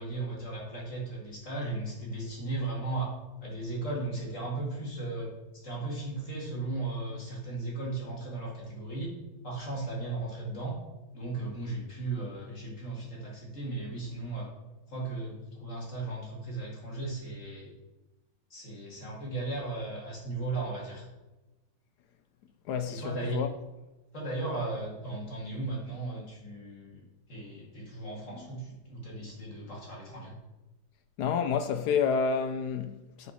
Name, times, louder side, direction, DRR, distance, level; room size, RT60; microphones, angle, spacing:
voice 1, 0.0-3.1 3.4-9.1 9.4-10.8 11.1-14.5 14.9-17.7 18.5-21.1 22.9-23.4 24.1-27.0 27.3-30.3, right 2 dB, 40° left, 2.5 m, -36 dB
voice 2, 22.7-23.5 31.2-33.3, left 6 dB, 75° left, 0.9 m, -29 dB
9.4 x 5.5 x 4.2 m
omnidirectional pair, 2.2 m